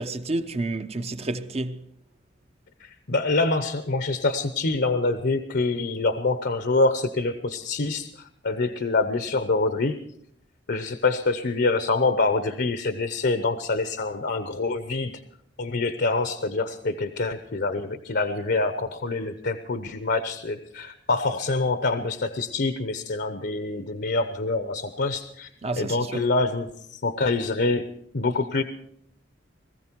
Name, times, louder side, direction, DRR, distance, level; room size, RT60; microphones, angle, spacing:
voice 1, 0.0-1.8 25.6-26.3, right 2 dB, 35° right, 0.8 m, -30 dB
voice 2, 2.8-10.0 10.7-15.1 15.6-25.5 25.8-27.9 28.1-28.6, left 3 dB, 60° left, 0.8 m, -26 dB
20.0 x 14.5 x 4.5 m
head